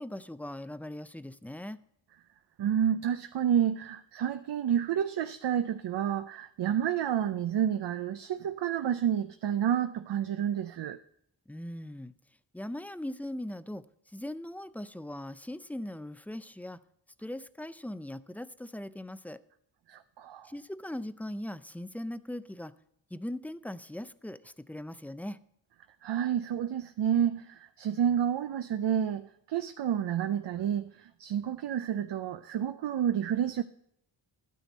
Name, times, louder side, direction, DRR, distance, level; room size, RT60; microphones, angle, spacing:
voice 1, 0.0-1.8 11.5-12.1 12.5-16.8 17.2-19.4 20.4-22.7 23.1-25.4, left 1 dB, 5° left, 13 dB, 0.4 m, -40 dB
voice 2, 2.6-11.0 19.9-20.5 26.0-33.6, right 9 dB, 70° right, 9 dB, 0.6 m, -29 dB
12.0 x 9.3 x 4.1 m, 0.72 s
wide cardioid pair, 80°, 44 cm